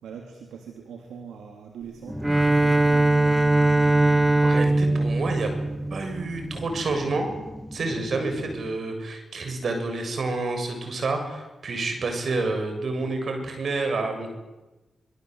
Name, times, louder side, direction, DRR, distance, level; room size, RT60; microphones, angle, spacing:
voice 1, 0.0-3.4, right 6 dB, 85° right, 2 dB, 3.1 m, -42 dB
sound 1, 2.0-8.7, equal, ahead, 2.3 m, -37 dB
Bowed string instrument, 2.2-6.5, right 2 dB, 15° right, 1.2 m, -21 dB
voice 2, 4.4-5.5 5.9-7.3 7.7-14.3, right 3 dB, 65° right, 5 dB, 7.5 m, -29 dB
26.5 x 22.0 x 8.2 m, 1.1 s
supercardioid pair, 45°, 0 cm